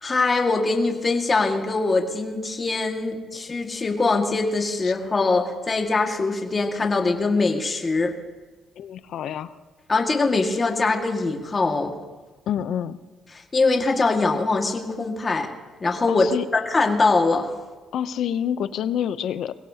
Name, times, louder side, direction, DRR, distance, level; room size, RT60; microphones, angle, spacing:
voice 1, 0.0-8.1 9.9-11.9 13.5-15.5 15.8-16.3 16.5-17.5, left 3 dB, 30° left, 2 dB, 1.8 m, -22 dB
voice 2, 8.8-9.5 12.5-13.0 16.1-16.5 17.9-19.6, left 9 dB, 75° left, 14 dB, 0.6 m, -27 dB
22.5 x 16.5 x 2.8 m, 1.3 s
cardioid pair, 90°, 0 cm